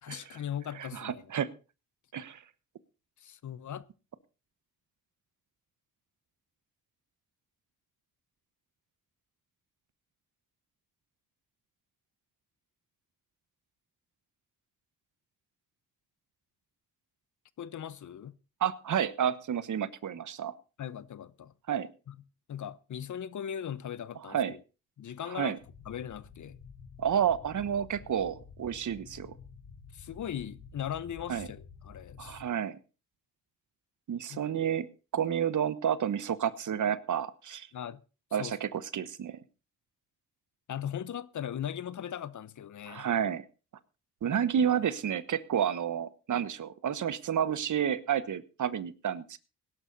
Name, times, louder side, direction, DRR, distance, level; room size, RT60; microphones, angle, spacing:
voice 1, 0.0-1.3 3.2-3.9 17.6-18.4 20.8-21.5 22.1-22.2 22.5-24.6 25.0-25.5 25.8-26.6 29.9-32.4 34.3-34.4 37.7-38.0 38.4-38.6 40.7-43.1, left 9 dB, 60° left, 0.9 m, -39 dB
voice 2, 0.8-1.5 2.1-2.4 18.6-20.6 21.7-21.9 24.3-24.5 25.3-25.6 27.0-29.3 31.3-31.5 32.2-32.8 34.1-34.9 35.1-37.7 38.3-39.4 42.9-43.4 44.2-49.4, right 8 dB, 60° right, 1.2 m, -30 dB
sound 1, 25.6-32.4, left 5 dB, 85° left, 3.6 m, -51 dB
16.5 x 11.5 x 4.0 m
supercardioid pair, 60°, 34 cm